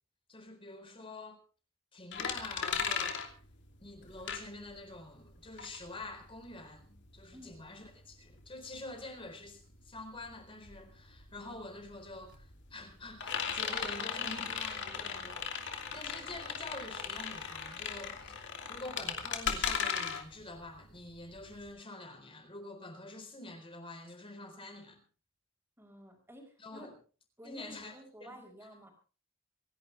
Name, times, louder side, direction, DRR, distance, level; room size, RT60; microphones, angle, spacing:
voice 1, 0.3-1.4 1.9-3.2 3.8-18.4 18.7-25.0 26.6-26.9 27.4-28.4, left 2 dB, 25° left, 4.2 m, -47 dB
sound 1, 2.1-5.0 5.3-21.7, left 7 dB, 60° left, 2.8 m, -37 dB
voice 2, 7.3-7.6 25.8-27.0 27.4-28.9, equal, 10° right, 5.2 m, -52 dB
27.0 x 11.5 x 3.4 m
head